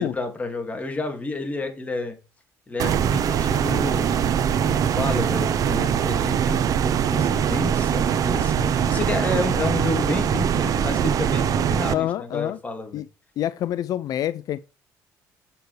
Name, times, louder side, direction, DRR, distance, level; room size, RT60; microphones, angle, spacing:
voice 1, 0.0-2.2 2.7-4.2 4.6-13.0, left 2 dB, 20° left, 2.3 m, -30 dB
sound 1, 2.8-11.9, right 8 dB, 60° right, 0.8 m, -22 dB
voice 2, 11.9-12.6 12.9-13.1 13.4-14.6, left 12 dB, 65° left, 0.4 m, -26 dB
7.8 x 6.9 x 3.3 m
cardioid pair, 100°, 7 cm